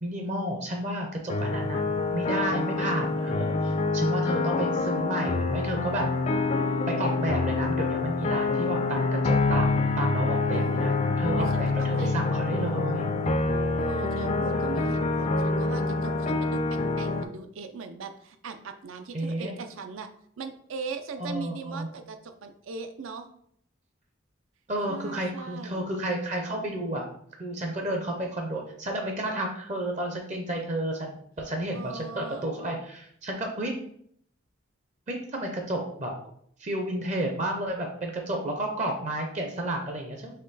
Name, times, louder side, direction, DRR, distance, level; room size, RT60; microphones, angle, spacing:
voice 1, 0.0-1.8 2.1-6.1 6.9-13.1 19.1-19.5 21.2-21.9 24.7-27.1 27.4-33.8 35.1-36.1 36.6-40.3, right 1 dB, 35° right, 2 dB, 0.6 m, -31 dB
sound 1, 1.3-17.2, left 3 dB, 35° left, 0.3 m, -26 dB
voice 2, 10.5-12.2 13.7-20.1 20.4-23.3 24.9-25.8 31.7-32.5, right 5 dB, 85° right, 8 dB, 0.5 m, -39 dB
4.3 x 3.0 x 4.0 m, 0.67 s
head